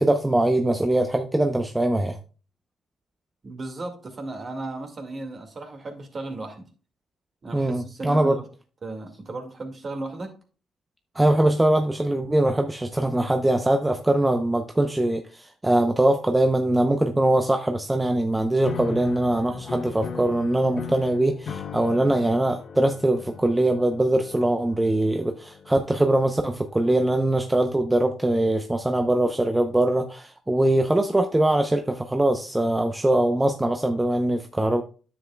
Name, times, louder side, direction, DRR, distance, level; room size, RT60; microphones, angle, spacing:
voice 1, 0.0-2.2 7.5-8.4 11.2-34.8, right 1 dB, 10° right, 5 dB, 0.6 m, -22 dB
voice 2, 3.4-6.7 7.4-8.5 8.8-10.4, right 2 dB, 40° right, 5 dB, 2.0 m, -35 dB
sound 1, 18.6-27.0, left 6 dB, 55° left, 0.7 m, -38 dB
9.9 x 7.3 x 2.3 m, 0.36 s
cardioid pair, 90°, 0 cm